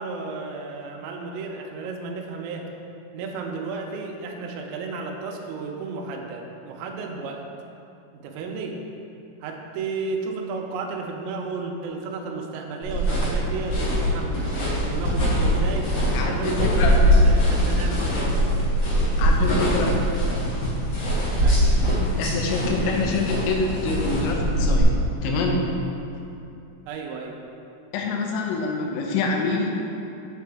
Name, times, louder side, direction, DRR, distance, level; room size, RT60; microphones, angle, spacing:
voice 1, 0.0-2.7 3.1-7.5 8.1-8.8 9.4-18.5 21.4-21.8 26.9-27.4, right 4 dB, 85° right, 1 dB, 2.7 m, -33 dB
sound 1, 12.8-24.8, equal, 60° left, 2.1 m, -22 dB
voice 2, 16.0-16.9 19.2-20.0 22.2-24.9 25.2-25.7 27.9-29.8, left 3 dB, 85° left, 1 dB, 3.3 m, -26 dB
7.5 x 6.6 x 3.6 m, 2.7 s
omnidirectional pair, 5.7 m